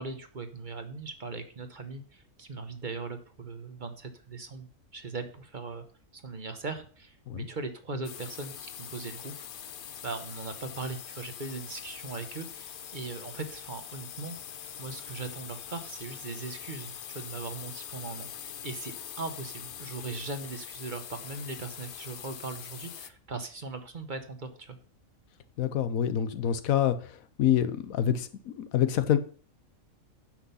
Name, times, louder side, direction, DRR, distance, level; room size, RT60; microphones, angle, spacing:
voice 1, 0.0-4.7 4.9-5.8 6.1-9.3 10.0-14.4 14.8-24.8, right 3 dB, 40° right, 8 dB, 1.0 m, -39 dB
sound 1, 8.0-23.1, left 9 dB, 55° left, 0.6 m, -43 dB
voice 2, 25.6-27.0 27.4-29.2, left 10 dB, 90° left, 12 dB, 1.2 m, -26 dB
8.9 x 6.1 x 5.5 m, 0.43 s
omnidirectional pair, 1.4 m